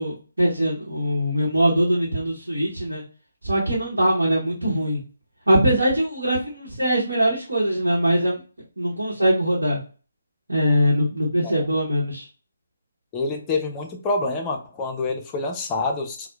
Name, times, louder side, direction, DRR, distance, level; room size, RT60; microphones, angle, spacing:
voice 1, 0.0-3.0 3.4-5.0 5.5-8.4 8.8-9.8 10.5-12.2, equal, 70° right, -6 dB, 0.9 m, -22 dB
voice 2, 13.1-16.3, left 3 dB, 15° left, 1 dB, 0.5 m, -27 dB
4.3 x 2.0 x 2.3 m, 0.37 s
figure-of-eight pair, 140°, 0 cm